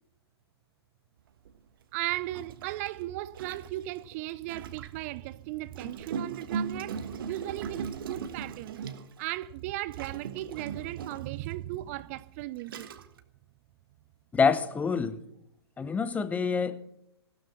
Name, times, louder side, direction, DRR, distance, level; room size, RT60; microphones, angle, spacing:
Gurgling, 1.5-1.6 2.3-5.1 5.7-9.3 9.9-11.4 12.1-12.2 12.6-13.2, right 6 dB, 55° right, 1.4 m, -38 dB
voice 1, 1.9-8.8 9.2-12.9, right 16 dB, 35° right, 0.5 m, -36 dB
voice 2, 14.3-15.2 15.8-16.8, left 5 dB, 10° left, 0.7 m, -26 dB
16.0 x 12.5 x 5.8 m
figure-of-eight pair, 115°, 14 cm